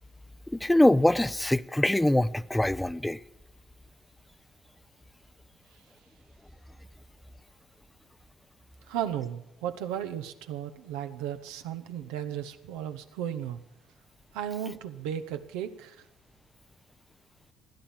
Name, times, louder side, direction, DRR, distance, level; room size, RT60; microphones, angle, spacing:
voice 1, 0.5-3.2, left 1 dB, 10° left, 0.6 m, -23 dB
voice 2, 8.9-13.6 14.3-16.0, right 10 dB, 75° right, 1.0 m, -35 dB
16.0 x 11.5 x 7.3 m
hypercardioid pair, 50°, 0 cm